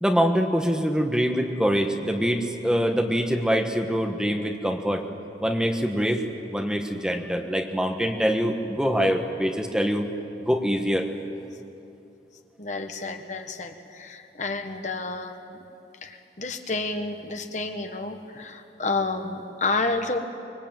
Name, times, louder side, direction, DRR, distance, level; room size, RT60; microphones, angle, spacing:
voice 1, 0.0-5.1 5.4-6.2 6.5-10.1 10.4-11.0, equal, 5° right, 3 dB, 1.4 m, -24 dB
voice 2, 12.6-15.6 16.0-20.2, left 3 dB, 40° left, 6 dB, 1.5 m, -30 dB
25.0 x 22.5 x 9.0 m, 2.8 s
head